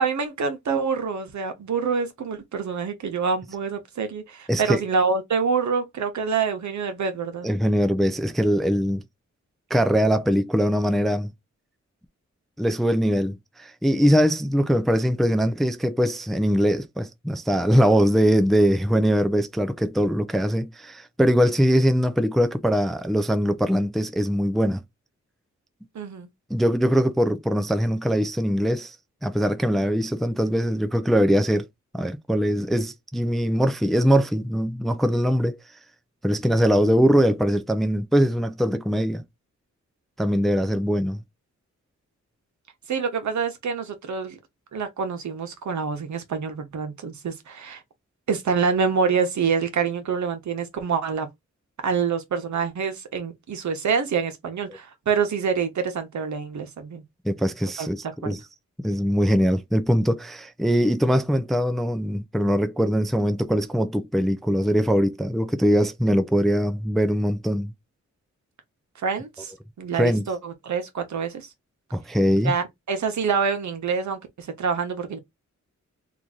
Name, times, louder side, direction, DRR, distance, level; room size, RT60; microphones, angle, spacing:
voice 1, 0.0-7.5 25.9-26.3 42.9-44.4 44.7-47.8 48.3-51.3 51.8-57.0 57.8-58.4 69.0-69.5 69.8-71.5 72.4-75.2, right 5 dB, 70° right, 1.0 m, -26 dB
voice 2, 4.5-4.8 7.4-9.0 9.7-11.3 12.6-24.8 26.5-29.0 29.2-31.7 31.9-35.6 36.2-39.2 40.2-41.2 57.2-58.4 58.8-67.7 70.0-70.3 71.9-72.5, equal, ahead, 0.4 m, -22 dB
2.9 x 2.5 x 3.7 m
wide cardioid pair, 95°, 29 cm